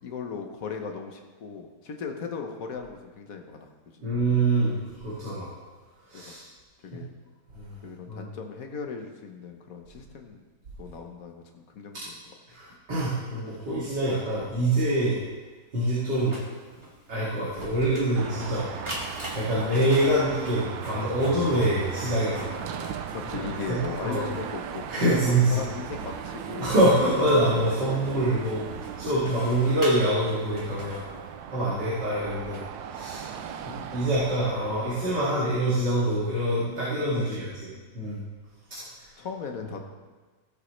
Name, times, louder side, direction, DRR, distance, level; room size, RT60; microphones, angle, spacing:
voice 1, 0.0-4.1 6.1-6.4 6.8-7.1 7.8-10.4 10.8-12.2 23.1-26.8 27.7-27.9 29.2-29.4 33.1-33.2 37.0-37.5 37.7-37.8 39.2-39.8, left 5 dB, 50° left, 4 dB, 1.4 m, -38 dB
voice 2, 4.0-4.8 5.0-5.5 6.1-6.4 7.5-7.8 8.1-8.3 12.5-15.2 15.7-16.4 17.1-18.6 19.3-22.7 23.4-23.8 24.0-24.2 24.9-25.6 26.6-31.0 31.5-32.6 32.9-33.2 33.6-37.5 37.9-38.2, right 1 dB, 60° right, -9 dB, 3.1 m, -25 dB
Printer, 16.1-31.5, equal, 15° right, 1.8 m, -43 dB
Car passing by / Traffic noise roadway noise / Engine, 18.2-35.3, right 8 dB, 80° right, 1.4 m, -38 dB
17.0 x 7.6 x 3.3 m, 1.4 s
omnidirectional pair, 2.1 m